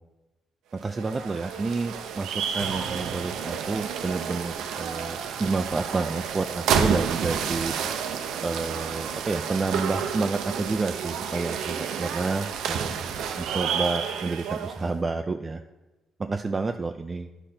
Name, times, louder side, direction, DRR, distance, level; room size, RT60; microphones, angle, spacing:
voice 1, 0.7-7.8 8.4-15.6 16.2-17.3, right 3 dB, 30° right, 6 dB, 0.3 m, -29 dB
sound 1, 0.8-14.9, right 7 dB, 85° right, 0.5 m, -30 dB
10.0 x 4.9 x 4.3 m, 1.1 s
cardioid pair, 90°, 0 cm